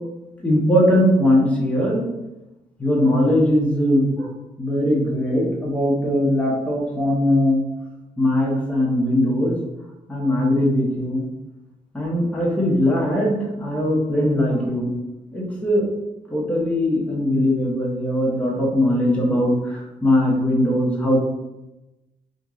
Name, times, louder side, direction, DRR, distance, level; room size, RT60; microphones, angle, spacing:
voice 1, 0.4-2.0 2.8-4.3 4.6-7.6 8.2-9.6 10.1-11.3 11.9-14.9 15.3-15.8 16.3-21.2, left 1 dB, 10° left, -4 dB, 0.9 m, -20 dB
2.9 x 2.6 x 3.6 m, 0.99 s
cardioid pair, 115°, 15 cm